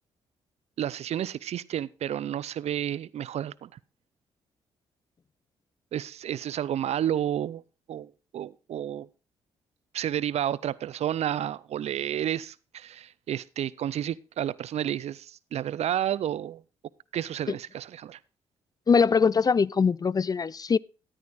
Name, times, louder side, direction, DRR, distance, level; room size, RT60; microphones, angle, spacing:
voice 1, 0.8-3.7 5.9-7.6 7.9-9.1 9.9-16.6 17.1-18.2, right 10 dB, 60° right, 0.5 m, -31 dB
voice 2, 18.9-20.8, left 5 dB, 30° left, 0.4 m, -22 dB
13.5 x 10.5 x 2.5 m
hypercardioid pair, 45°, 12 cm